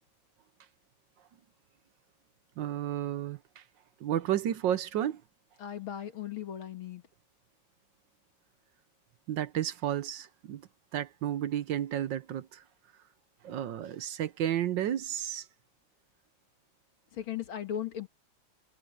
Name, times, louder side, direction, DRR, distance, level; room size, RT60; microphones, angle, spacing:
voice 1, 2.6-3.6 4.0-5.2 9.3-10.6 10.9-12.6 13.4-15.5, right 11 dB, 65° right, 1.4 m, -32 dB
voice 2, 5.6-7.0 17.1-18.1, left 10 dB, 75° left, 2.5 m, -37 dB
omnidirectional pair, 2.3 m